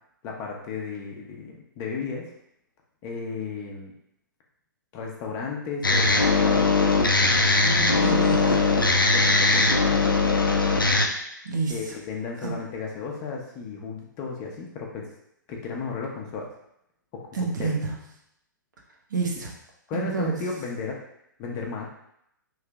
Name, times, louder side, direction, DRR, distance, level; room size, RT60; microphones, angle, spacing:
voice 1, 0.2-2.3 3.0-3.9 4.9-6.9 7.6-8.2 9.1-10.3 11.7-15.1 15.5-16.5 17.1-17.7 19.9-21.0 21.4-21.9, left 4 dB, 30° left, -1 dB, 0.7 m, -34 dB
sound 1, 5.8-11.1, left 3 dB, 90° left, 0.5 m, -20 dB
voice 2, 8.0-8.6 11.4-11.8 12.4-12.5 17.3-17.9 19.1-19.5 19.9-20.4, right 4 dB, 65° right, -1 dB, 0.9 m, -28 dB
3.2 x 2.8 x 3.5 m, 0.77 s
figure-of-eight pair, 120°, 11 cm